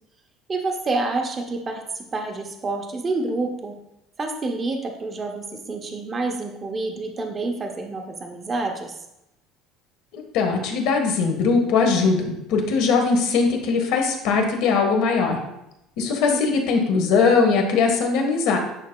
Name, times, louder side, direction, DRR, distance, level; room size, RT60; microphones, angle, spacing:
voice 1, 0.5-3.8 4.2-9.0 16.3-16.4, right 3 dB, 20° right, 3 dB, 0.5 m, -28 dB
voice 2, 10.1-15.4 16.0-18.6, left 4 dB, 60° left, 3 dB, 1.2 m, -20 dB
9.3 x 5.1 x 2.2 m, 0.86 s
cardioid pair, 175°, 0 cm